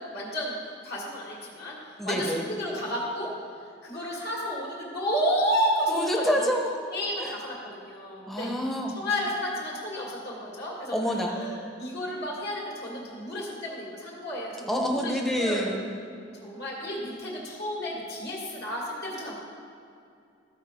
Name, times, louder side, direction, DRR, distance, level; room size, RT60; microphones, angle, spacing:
voice 1, 0.1-0.5 0.8-1.8 2.0-3.3 3.8-6.5 6.9-8.5 8.9-15.8 16.3-19.4, equal, 60° left, -4 dB, 2.2 m, -31 dB
voice 2, 2.0-2.4 5.9-6.7 7.2-7.3 8.3-8.9 10.9-11.3 14.7-15.8, equal, ahead, 1 dB, 0.9 m, -27 dB
14.5 x 5.0 x 4.3 m, 2.5 s
head